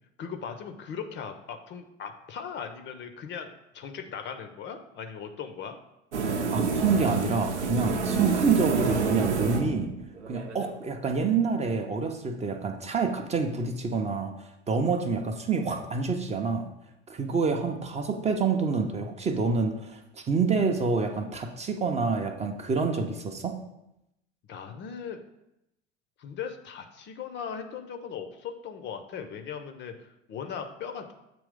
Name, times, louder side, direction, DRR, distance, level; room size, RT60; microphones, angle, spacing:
voice 1, 0.2-5.8 24.5-25.2 26.2-31.1, left 7 dB, 35° left, 6 dB, 0.6 m, -38 dB
sound 1, 6.1-10.7, right 4 dB, 75° right, 0.7 m, -28 dB
voice 2, 6.5-9.9 10.3-16.7 17.1-23.5, right 4 dB, 20° right, 4 dB, 0.6 m, -27 dB
7.7 x 3.0 x 5.0 m, 0.86 s
figure-of-eight pair, 70°, 35 cm